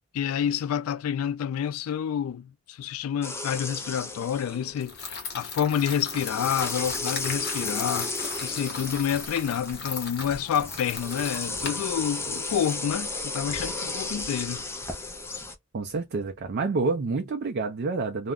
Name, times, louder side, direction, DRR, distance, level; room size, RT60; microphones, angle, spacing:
voice 1, 0.1-14.6, left 8 dB, 90° left, 0.3 m, -29 dB
sound 1, 3.2-5.0 5.8-15.5, left 3 dB, 10° left, 0.5 m, -34 dB
sound 2, 4.8-12.7, left 4 dB, 55° left, 0.9 m, -38 dB
voice 2, 15.7-18.3, right 3 dB, 50° right, 0.4 m, -28 dB
2.3 x 2.0 x 3.5 m
head